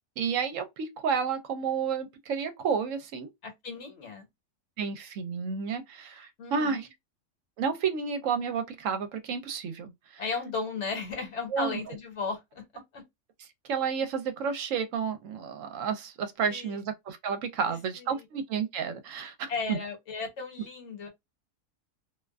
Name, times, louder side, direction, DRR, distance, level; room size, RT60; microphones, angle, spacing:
voice 1, 0.2-3.3 4.8-6.9 7.6-10.2 11.5-11.8 13.7-19.8, right 6 dB, 75° right, 0.9 m, -31 dB
voice 2, 3.4-4.3 6.4-6.9 10.2-13.0 16.5-16.8 17.7-18.2 19.5-21.1, left 4 dB, 55° left, 1.3 m, -36 dB
2.5 x 2.2 x 2.3 m
omnidirectional pair, 1.4 m